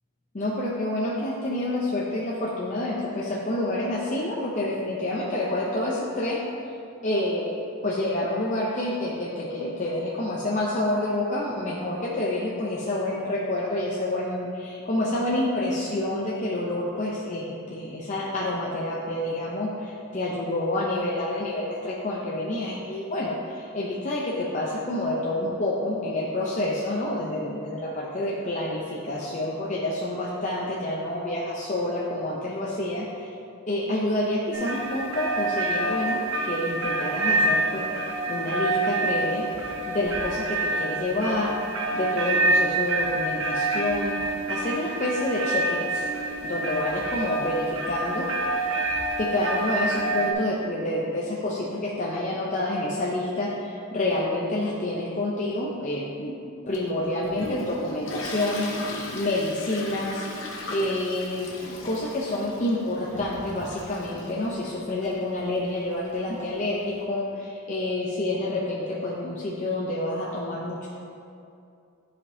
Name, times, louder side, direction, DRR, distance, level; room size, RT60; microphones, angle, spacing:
voice 1, 0.3-6.4 7.0-7.5 7.8-33.3 33.7-39.5 39.9-41.6 41.9-44.2 44.5-46.0 46.4-48.3 49.2-56.3 56.7-60.2 60.7-70.9, left 1 dB, 35° left, -5 dB, 0.6 m, -28 dB
sound 1, 34.5-50.3, right 2 dB, 70° right, 0.8 m, -27 dB
Toilet flush, 56.7-67.0, left 2 dB, 60° left, 1.0 m, -39 dB
11.0 x 5.1 x 2.7 m, 2.6 s
head